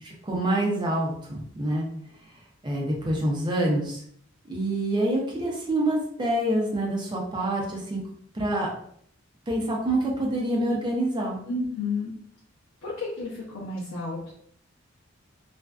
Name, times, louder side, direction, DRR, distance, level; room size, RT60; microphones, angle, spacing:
voice 1, 0.0-1.9 2.6-4.0 4.5-8.0 8.3-8.7 9.5-11.4, right 1 dB, 20° right, -2 dB, 0.5 m, -26 dB
voice 2, 11.5-12.1 12.8-14.4, left 3 dB, 85° left, -6 dB, 0.6 m, -31 dB
2.5 x 2.2 x 2.2 m, 0.65 s
head